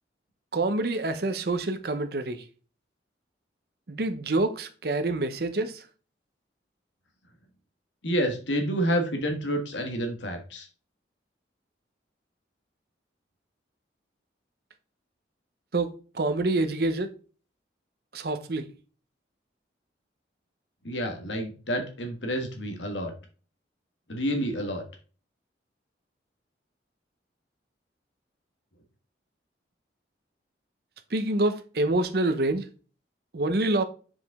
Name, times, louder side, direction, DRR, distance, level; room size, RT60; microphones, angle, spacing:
voice 1, 0.5-2.4 3.9-5.8 15.7-17.1 18.1-18.7 31.1-32.7 33.3-33.8, right 2 dB, 55° right, 0.7 m, -27 dB
voice 2, 8.0-10.7 20.8-23.1 24.1-24.8, equal, 80° left, 1.4 m, -29 dB
7.2 x 5.0 x 3.5 m
head